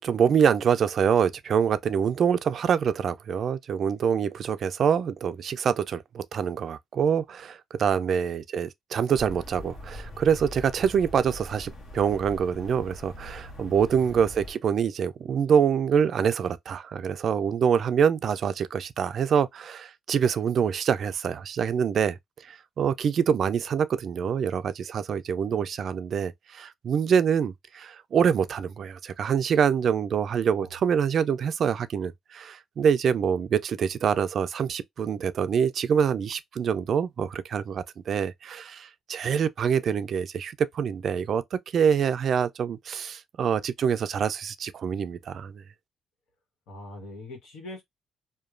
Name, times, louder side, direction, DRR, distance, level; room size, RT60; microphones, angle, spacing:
voice 1, 0.0-22.2 22.5-41.4 41.7-45.5, right 7 dB, 60° right, 0.3 m, -25 dB
sound 1, 9.1-14.5, equal, 60° left, 1.1 m, -42 dB
voice 2, 13.9-14.2 30.6-30.7 46.7-47.8, left 1 dB, 85° left, 1.2 m, -42 dB
2.9 x 2.2 x 2.4 m
cardioid pair, 90°, 0 cm